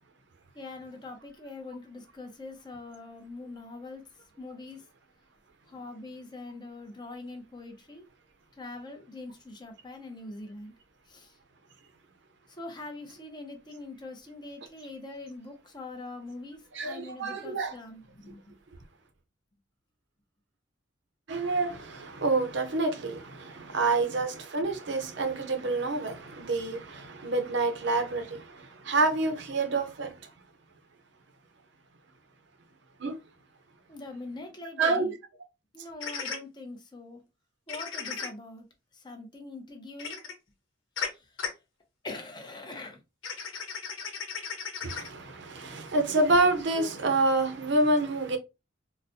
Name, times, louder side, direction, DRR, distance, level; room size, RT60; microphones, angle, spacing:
voice 1, 0.5-4.0 4.4-4.8 5.7-8.0 8.6-10.7 11.1-11.3 12.5-18.5 23.4-23.7 33.9-35.1 35.7-37.2 37.7-38.6 38.9-40.2 42.0-43.0, left 2 dB, 25° left, 0.7 m, -43 dB
voice 2, 16.7-17.8 21.3-30.2 33.0-33.2 34.8-35.1 44.8-48.4, right 2 dB, 60° right, 0.7 m, -28 dB
sound 1, 36.0-36.4 37.7-38.3 40.0-40.3 41.0-41.1 41.4-41.5 43.2-45.1, left 6 dB, 90° left, 0.9 m, -35 dB
4.0 x 2.2 x 2.6 m
head